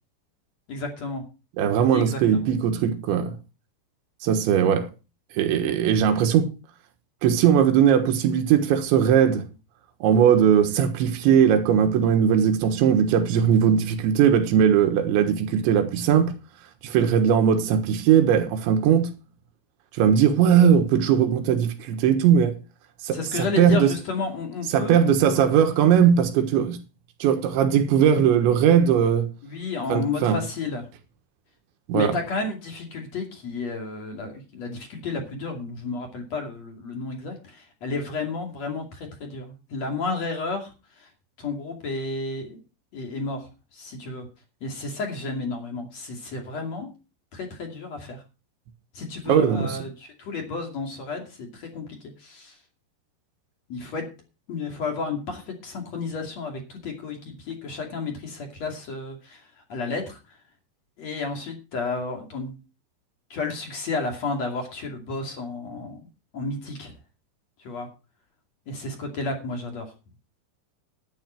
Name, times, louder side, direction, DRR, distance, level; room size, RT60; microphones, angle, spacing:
voice 1, 0.7-1.2 1.9-2.2 23.1-25.5 29.4-30.9 31.9-41.1 41.4-42.6 42.9-44.3 44.6-46.9 47.3-48.2 48.9-52.6 53.7-54.1 54.5-60.4 61.0-62.6 63.3-66.1 66.3-66.9 67.6-67.9 68.7-69.9, left 3 dB, 40° left, 3.1 m, -32 dB
voice 2, 1.6-3.4 4.2-4.9 5.4-6.5 7.2-9.5 10.0-16.3 16.8-19.1 20.0-22.6 23.0-23.9 24.7-26.8 27.2-29.3 29.9-30.4 31.9-32.2 49.3-49.7, right 8 dB, 80° right, 3.7 m, -19 dB
12.0 x 10.5 x 4.5 m
omnidirectional pair, 5.4 m